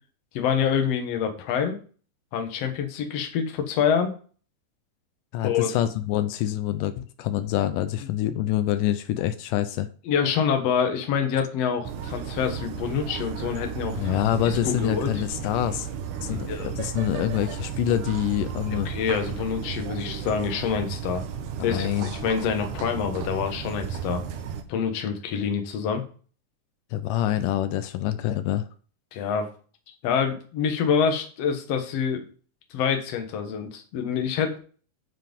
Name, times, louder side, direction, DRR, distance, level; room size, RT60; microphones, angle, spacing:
voice 1, 0.3-1.8 2.3-4.1 5.4-5.7 10.1-15.1 16.2-16.7 18.7-21.3 21.6-24.2 24.7-26.0 29.1-29.5 30.0-32.3 32.7-34.6, left 7 dB, 60° left, 5 dB, 2.1 m, -26 dB
voice 2, 5.3-9.9 14.0-15.9 16.2-18.9 21.6-22.1 26.9-28.6, left 12 dB, 85° left, 10 dB, 2.2 m, -26 dB
sound 1, 11.8-24.6, right 8 dB, 75° right, 2.4 m, -34 dB
9.5 x 4.8 x 5.3 m, 0.41 s
omnidirectional pair, 3.8 m